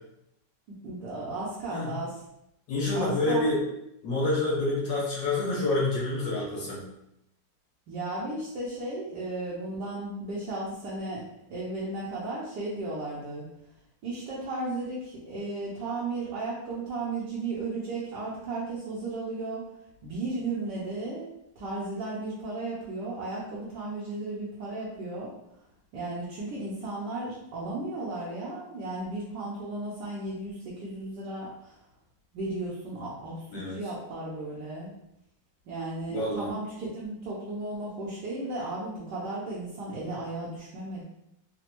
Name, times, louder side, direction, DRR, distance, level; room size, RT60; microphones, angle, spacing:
voice 1, 0.7-2.2 2.9-3.6 7.9-11.2 11.5-13.5 14.0-19.7 20.0-21.3 21.6-25.3 25.9-31.8 32.3-34.9 35.7-41.0, right 2 dB, 70° right, -7 dB, 1.3 m, -35 dB
voice 2, 2.7-3.6 4.0-6.8 33.5-33.8 36.1-36.5, left 2 dB, 80° left, -5 dB, 1.9 m, -27 dB
4.1 x 2.2 x 2.9 m, 0.82 s
omnidirectional pair, 2.0 m